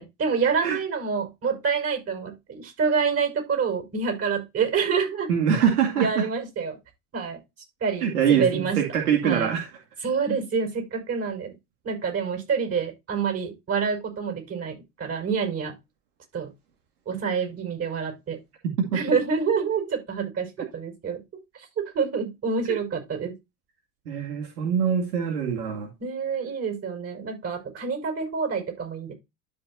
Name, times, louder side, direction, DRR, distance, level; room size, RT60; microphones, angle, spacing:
voice 1, 0.0-5.3 6.0-6.8 7.1-7.4 7.8-8.8 9.2-9.5 10.0-11.5 11.8-15.7 16.3-16.5 17.1-18.4 18.9-21.2 21.5-23.4 26.0-29.1, right 5 dB, 30° right, 5 dB, 5.2 m, -27 dB
voice 2, 5.3-6.3 8.0-9.7 18.8-19.0 22.7-22.8 24.1-25.9, right 7 dB, 75° right, 2 dB, 2.4 m, -24 dB
12.5 x 5.5 x 2.6 m, 0.23 s
hypercardioid pair, 85°, 46 cm